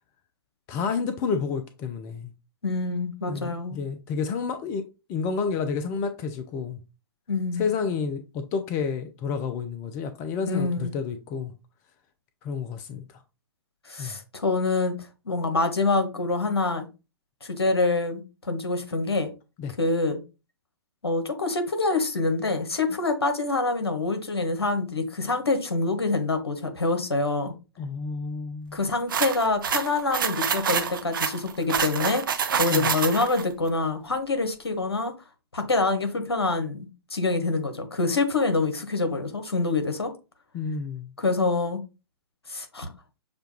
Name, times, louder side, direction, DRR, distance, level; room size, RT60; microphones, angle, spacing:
voice 1, 0.7-2.3 3.3-4.8 5.1-6.8 7.6-11.5 12.4-13.1 14.0-14.2 19.6-19.7 27.8-28.8 32.7-32.9 40.5-41.1, left 5 dB, 20° left, 0.3 m, -30 dB
voice 2, 2.6-3.8 7.3-7.7 10.5-10.9 13.9-14.9 15.3-16.9 17.4-19.3 19.8-20.2 21.0-27.5 28.7-32.2 32.6-35.1 35.5-40.1 41.2-41.8 42.5-42.9, left 3 dB, 75° left, 1.0 m, -26 dB
sound 1, 29.1-33.4, right 7 dB, 55° right, 0.5 m, -27 dB
6.7 x 2.2 x 2.9 m
figure-of-eight pair, 115°, 13 cm